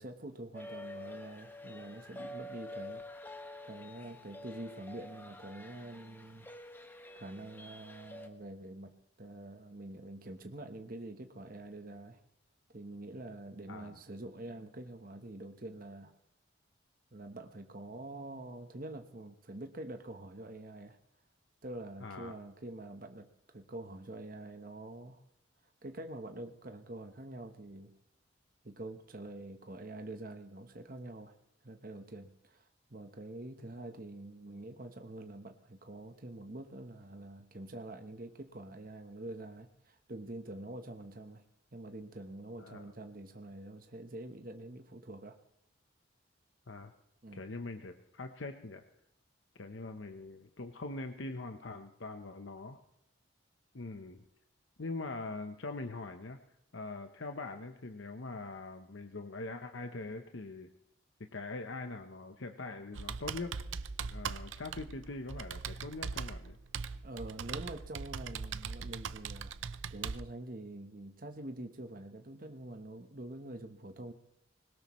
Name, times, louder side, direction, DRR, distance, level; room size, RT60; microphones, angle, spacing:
voice 1, 0.0-3.0 3.6-6.5 7.2-8.9 9.2-12.2 12.7-16.1 17.1-21.0 21.6-23.3 23.5-25.2 25.8-27.9 28.6-31.3 31.6-41.4 41.7-45.4 47.2-47.4 67.0-69.6 69.9-74.1, right 1 dB, 45° right, 6 dB, 1.1 m, -46 dB
sound 1, 0.5-8.3, left 1 dB, 10° left, 1.0 m, -48 dB
voice 2, 22.0-22.3 42.6-42.9 46.7-46.9 47.3-48.8 49.5-52.8 53.7-54.2 54.8-56.4 56.7-60.7 61.3-63.5 64.0-66.6, left 3 dB, 70° left, 6 dB, 0.9 m, -42 dB
Computer keyboard, 62.9-70.2, right 6 dB, 70° right, 0.6 m, -40 dB
21.0 x 18.5 x 3.2 m, 0.80 s
head